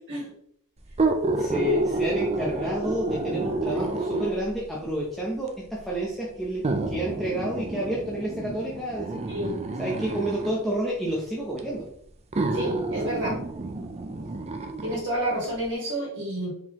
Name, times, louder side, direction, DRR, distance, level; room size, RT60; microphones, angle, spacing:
sound 1, 0.9-4.6 5.5-5.6 6.6-10.6 11.6-11.7 12.3-15.0 15.4-15.5, right 2 dB, 30° right, 0.5 m, -29 dB
voice 1, 1.3-9.2 9.8-11.9, equal, ahead, -5 dB, 0.7 m, -29 dB
voice 2, 12.5-13.4 14.8-16.5, right 1 dB, 55° right, -6 dB, 1.9 m, -29 dB
4.6 x 3.8 x 3.0 m, 0.65 s
head